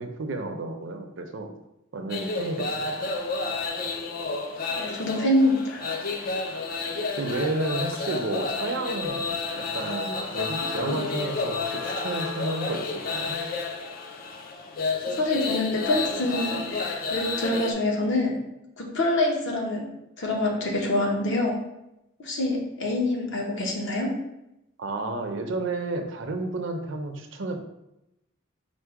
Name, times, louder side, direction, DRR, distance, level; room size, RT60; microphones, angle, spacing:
voice 1, 0.0-1.5 1.9-3.0 6.2-6.3 7.2-13.4 24.8-27.6, right 2 dB, 60° right, 5 dB, 0.5 m, -31 dB
sound 1, 2.1-17.7, left 4 dB, 45° left, 0.4 m, -31 dB
voice 2, 4.7-5.8 10.6-11.0 15.1-18.3 18.8-19.9 20.2-21.6 22.2-24.1, left 1 dB, 60° left, 0 dB, 0.8 m, -26 dB
sound 2, 10.4-14.4, left 4 dB, 90° left, 0.8 m, -41 dB
4.4 x 2.1 x 4.6 m, 0.88 s
head